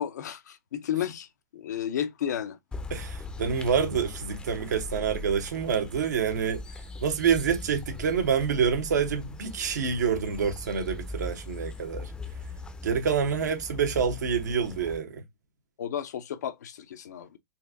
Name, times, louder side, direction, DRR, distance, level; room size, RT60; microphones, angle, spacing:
voice 1, 0.0-2.6 15.8-17.4, left 9 dB, 85° left, 0.6 m, -33 dB
sound 1, 2.7-15.0, left 3 dB, 10° left, 0.4 m, -40 dB
voice 2, 2.9-6.6 7.0-12.1 12.8-15.2, right 6 dB, 90° right, 1.0 m, -27 dB
4.0 x 2.5 x 2.6 m
hypercardioid pair, 140°, 9 cm